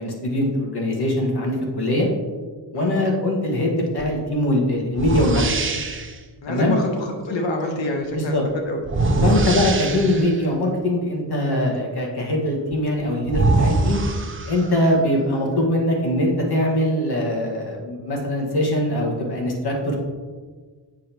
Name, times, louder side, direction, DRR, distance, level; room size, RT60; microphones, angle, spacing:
voice 1, 0.0-2.1 2.7-5.4 6.5-6.8 8.1-8.4 9.2-14.0 14.5-20.0, left 1 dB, 60° left, -1 dB, 1.8 m, -22 dB
voice 2, 2.7-3.2 6.4-8.4 8.7-8.8 9.2-9.5 11.5-11.8 17.5-17.6, left 2 dB, 85° left, 2 dB, 1.2 m, -27 dB
sound 1, 4.0-4.2 4.9-6.2 8.8-10.4 12.7-12.8 13.3-14.9, right 3 dB, 30° right, 0.8 m, -22 dB
7.6 x 6.3 x 3.0 m, 1.5 s
cardioid pair, 65°, 43 cm